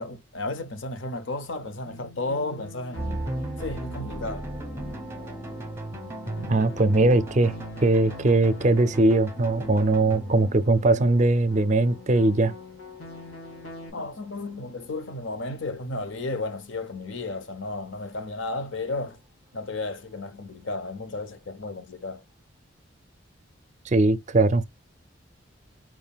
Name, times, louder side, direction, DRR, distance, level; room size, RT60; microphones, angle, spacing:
voice 1, 0.0-3.2 3.6-4.5 13.9-19.2 19.5-22.2, left 2 dB, 70° left, 0.7 m, -33 dB
sound 1, 1.8-13.9, left 2 dB, 85° left, 2.5 m, -44 dB
sound 2, 3.0-15.6, right 1 dB, 10° right, 0.8 m, -38 dB
voice 2, 6.4-7.6 7.8-12.5 23.9-24.6, right 2 dB, 35° right, 0.4 m, -20 dB
4.7 x 3.7 x 2.3 m
head